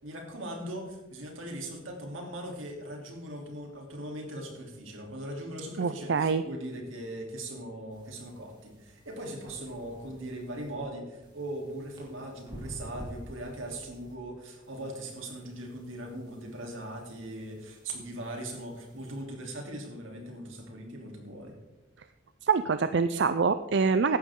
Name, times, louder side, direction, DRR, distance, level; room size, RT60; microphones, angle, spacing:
voice 1, 0.0-21.6, right 1 dB, 85° right, 1 dB, 3.2 m, -40 dB
voice 2, 5.8-6.4 22.4-24.2, right 5 dB, 60° right, 11 dB, 0.5 m, -25 dB
sound 1, 7.9-10.7 11.2-14.1 14.6-19.2, equal, 25° right, 3.3 m, -50 dB
15.5 x 11.5 x 3.7 m, 1.0 s
head